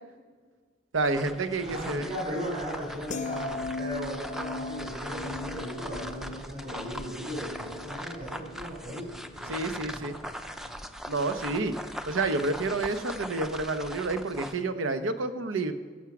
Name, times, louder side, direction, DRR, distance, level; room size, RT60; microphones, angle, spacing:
sound 1, 0.9-14.6, equal, ahead, 0.5 m, -40 dB
voice 1, 0.9-2.1 9.5-10.2 11.1-11.7 12.1-15.7, right 3 dB, 85° right, 9 dB, 0.9 m, -29 dB
voice 2, 1.6-10.7, equal, 45° right, -3 dB, 4.8 m, -37 dB
sound 2, 3.1-9.4 9.7-10.0, left 3 dB, 40° left, 0.6 m, -39 dB
16.5 x 7.3 x 6.0 m, 1.5 s
head